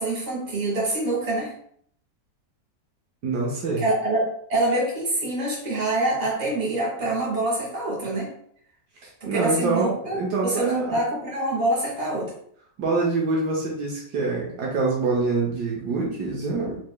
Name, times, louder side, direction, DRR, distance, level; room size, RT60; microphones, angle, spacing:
voice 1, 0.0-1.5 3.8-8.3 9.2-12.3, right 2 dB, 25° right, -6 dB, 1.7 m, -25 dB
voice 2, 3.2-3.8 9.0-11.0 12.8-16.8, right 3 dB, 70° right, -3 dB, 1.3 m, -25 dB
4.7 x 3.1 x 2.2 m, 0.65 s
omnidirectional pair, 1.8 m